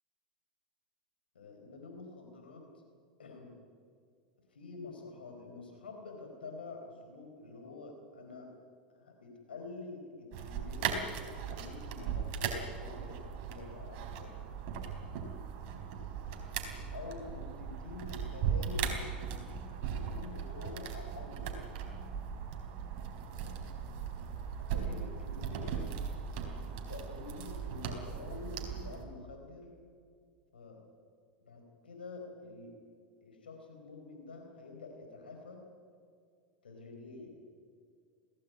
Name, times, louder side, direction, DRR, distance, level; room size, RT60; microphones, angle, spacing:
voice 1, 1.3-2.7 3.2-3.5 4.5-8.5 8.9-11.0 11.5-14.4 16.9-19.4 19.9-21.5 23.4-23.6 24.0-24.2 24.7-25.8 26.7-29.7 30.5-30.8 31.5-32.7 33.2-35.6 36.6-37.3, left 3 dB, 90° left, 3 dB, 4.4 m, -47 dB
sound 1, 10.3-29.0, right 7 dB, 55° right, 3.8 m, -38 dB
21.5 x 16.5 x 9.5 m, 2.2 s
hypercardioid pair, 95°, 5 cm